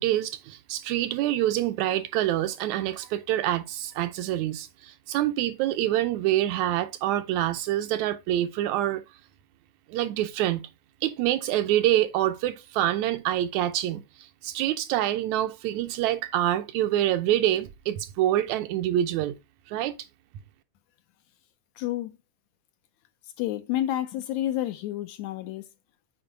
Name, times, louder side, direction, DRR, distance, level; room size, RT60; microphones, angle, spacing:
voice 1, 0.0-9.0 9.9-10.6 11.0-19.4 19.7-19.9, right 13 dB, 80° right, 1.8 m, -26 dB
voice 2, 21.8-22.2 23.4-25.7, left 13 dB, 80° left, 1.7 m, -29 dB
7.8 x 4.5 x 4.0 m
omnidirectional pair, 3.5 m